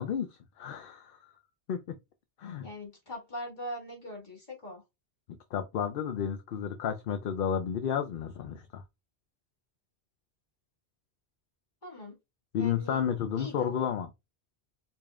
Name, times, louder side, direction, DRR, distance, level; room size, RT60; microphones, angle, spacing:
voice 1, 0.0-1.4 1.7-2.0 2.4-2.7 5.5-8.8 12.5-14.1, left 8 dB, 65° left, 0.7 m, -32 dB
voice 2, 2.6-4.8 11.8-12.2 12.6-13.0 13.4-13.9, equal, 45° left, 1.9 m, -42 dB
4.9 x 2.6 x 2.4 m
omnidirectional pair, 1.1 m